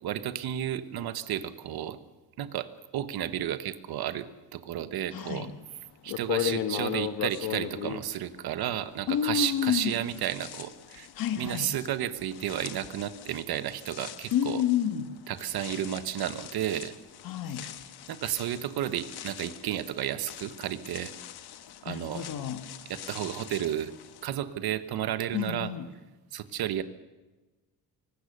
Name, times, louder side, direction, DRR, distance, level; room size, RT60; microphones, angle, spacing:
voice 1, 0.0-2.0 2.4-5.5 6.0-11.1 11.4-14.6 15.3-16.9 18.1-21.1 21.8-22.2 22.9-23.9 24.2-25.7 26.3-26.8, right 11 dB, 75° right, 12 dB, 1.2 m, -32 dB
voice 2, 5.1-5.6 9.1-10.0 11.1-11.8 14.3-15.1 17.2-17.7 21.9-22.6 25.3-25.9, left 9 dB, 65° left, 8 dB, 1.6 m, -29 dB
sound 1, 5.5-5.6 6.1-9.2 9.5-24.2, left 11 dB, 90° left, 1.3 m, -39 dB
24.0 x 19.0 x 6.7 m, 1.2 s
cardioid pair, 170°, 38 cm